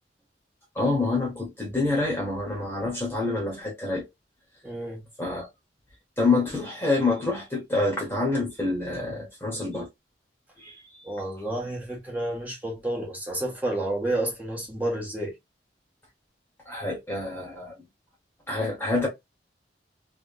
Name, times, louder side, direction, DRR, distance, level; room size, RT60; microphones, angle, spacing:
voice 1, 0.7-4.1 5.2-5.5 6.2-9.9 10.6-10.8 16.6-17.7 18.5-19.1, left 3 dB, 15° left, 1.2 m, -27 dB
voice 2, 4.6-5.0 11.0-15.3, right 1 dB, 10° right, 1.4 m, -30 dB
3.4 x 3.0 x 2.4 m
head